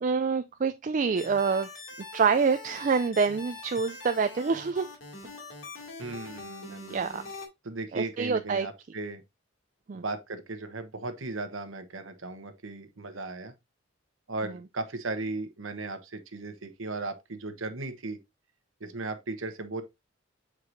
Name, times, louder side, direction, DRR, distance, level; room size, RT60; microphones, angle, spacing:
voice 1, 0.0-1.7 2.1-4.9 6.9-7.2 7.9-8.7 9.9-10.0, right 5 dB, 40° right, 0.3 m, -26 dB
sound 1, 1.2-7.5, left 3 dB, 80° left, 2.4 m, -43 dB
voice 2, 6.0-7.2 7.6-9.2 9.9-13.5 14.3-18.2 18.8-19.8, right 3 dB, 90° right, 1.1 m, -36 dB
7.5 x 4.8 x 2.6 m
head